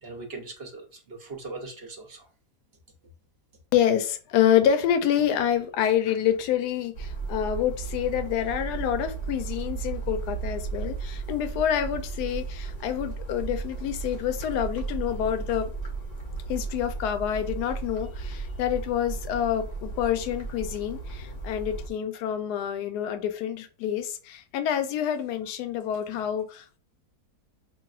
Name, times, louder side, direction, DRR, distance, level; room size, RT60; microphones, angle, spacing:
voice 1, 0.0-2.3, right 3 dB, 50° right, 0.8 m, -40 dB
voice 2, 3.7-15.7 16.5-26.8, left 10 dB, 75° left, 1.1 m, -27 dB
sound 1, 6.9-21.9, right 4 dB, 40° left, 0.6 m, -35 dB
6.0 x 2.4 x 2.4 m
omnidirectional pair, 1.8 m